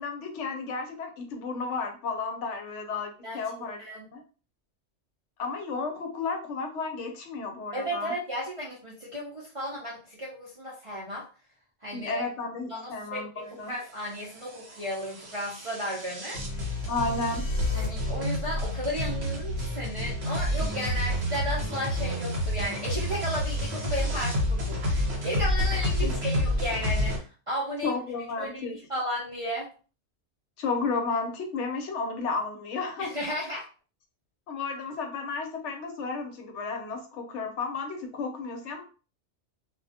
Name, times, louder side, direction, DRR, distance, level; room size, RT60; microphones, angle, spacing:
voice 1, 0.0-3.8 4.1-4.2 5.4-8.1 11.9-13.7 16.9-17.4 26.0-26.1 27.8-28.8 30.6-33.1 33.5-33.6 34.5-38.8, left 4 dB, 70° left, 4 dB, 0.9 m, -32 dB
voice 2, 7.7-11.3 11.8-12.2 12.7-16.4 17.7-28.0 28.4-29.7 33.0-33.7, equal, 45° right, -7 dB, 0.4 m, -34 dB
sound 1, 13.9-27.2, left 1 dB, 60° right, 1.0 m, -29 dB
sound 2, 15.3-17.9, left 2 dB, 35° left, 0.6 m, -48 dB
2.3 x 2.1 x 2.7 m, 0.36 s
omnidirectional pair, 1.3 m